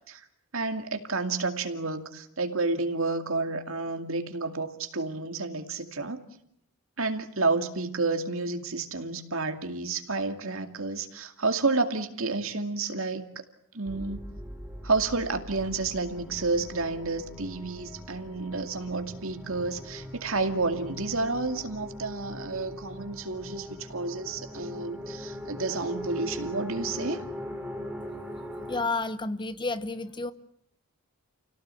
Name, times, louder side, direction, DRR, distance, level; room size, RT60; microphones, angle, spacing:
voice 1, 0.5-6.2 7.0-13.2 13.7-14.2 14.8-27.2, right 3 dB, 70° right, 7 dB, 2.4 m, -30 dB
sound 1, 13.9-28.9, left 1 dB, 5° right, 3.4 m, -41 dB
voice 2, 28.7-30.3, left 3 dB, 20° left, 13 dB, 0.9 m, -30 dB
29.5 x 18.0 x 8.4 m, 0.71 s
head